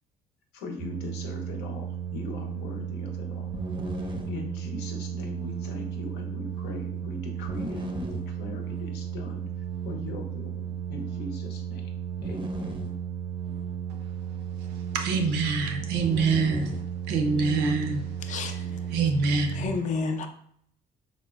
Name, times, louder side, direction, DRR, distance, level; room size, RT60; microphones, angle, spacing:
voice 1, 0.5-3.5 4.3-9.5 9.8-12.0 12.2-12.7, left 3 dB, 85° left, 0.7 m, -40 dB
sound 1, 0.8-19.7, right 7 dB, 30° right, 0.5 m, -34 dB
voice 2, 14.6-16.8 17.1-18.6 18.9-19.7, right 4 dB, 85° right, 0.5 m, -26 dB
voice 3, 18.3-18.8 19.5-20.3, left 4 dB, 45° left, 0.4 m, -31 dB
3.7 x 2.1 x 2.3 m
cardioid pair, 110°, 17 cm